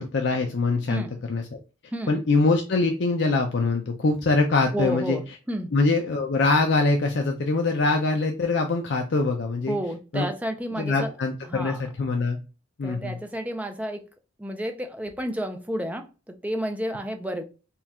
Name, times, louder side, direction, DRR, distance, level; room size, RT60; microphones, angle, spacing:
voice 1, 0.0-1.4 2.1-5.2 5.7-9.8 10.1-10.3 10.8-12.4 12.8-13.2, left 3 dB, 55° left, 3 dB, 0.5 m, -23 dB
voice 2, 4.7-5.7 9.7-11.1 11.5-11.8 12.8-14.0 14.4-17.4, equal, 5° right, 5 dB, 0.4 m, -31 dB
4.4 x 2.3 x 3.5 m, 0.33 s
head